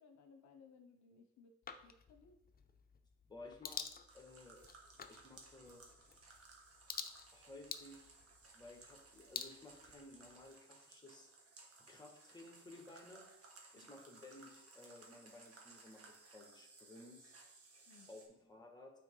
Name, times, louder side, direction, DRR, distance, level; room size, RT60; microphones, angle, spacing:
voice 1, 0.0-1.6 1.8-2.4 13.7-13.9 17.9-18.1, left 5 dB, 70° left, 6 dB, 0.8 m, -62 dB
sound 1, 1.6-10.5, left 6 dB, 30° left, 0.6 m, -51 dB
voice 2, 3.3-4.6 5.1-5.8 7.3-8.2 8.5-11.3 11.8-17.3 18.1-18.9, left 2 dB, 15° left, 1 dB, 1.8 m, -57 dB
sound 2, 4.1-18.3, right 3 dB, 50° right, 1.7 m, -61 dB
9.1 x 4.5 x 3.8 m, 0.83 s
cardioid pair, 90°, 30 cm